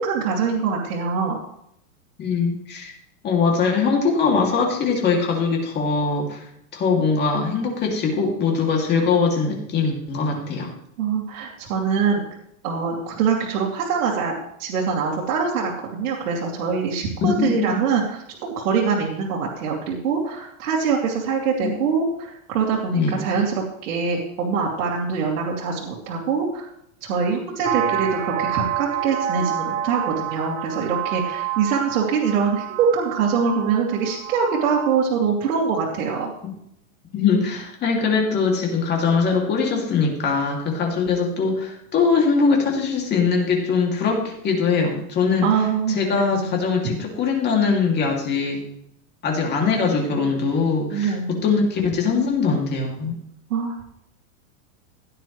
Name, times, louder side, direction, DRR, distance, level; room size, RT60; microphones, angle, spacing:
voice 1, 0.0-1.4 11.0-12.2 12.6-26.7 27.0-36.3 45.4-46.5 50.9-51.3 53.5-53.8, right 5 dB, 85° right, -4 dB, 2.6 m, -24 dB
voice 2, 2.2-2.9 3.2-6.5 6.7-10.7 17.4-17.6 21.6-21.7 22.9-23.2 36.4-36.5 37.1-45.5 45.9-48.6 49.2-53.2, left 5 dB, 25° left, 0 dB, 2.6 m, -21 dB
sound 1, 27.6-35.0, right 11 dB, 35° right, 1.2 m, -28 dB
16.5 x 9.4 x 3.2 m, 0.75 s
supercardioid pair, 165°, 43 cm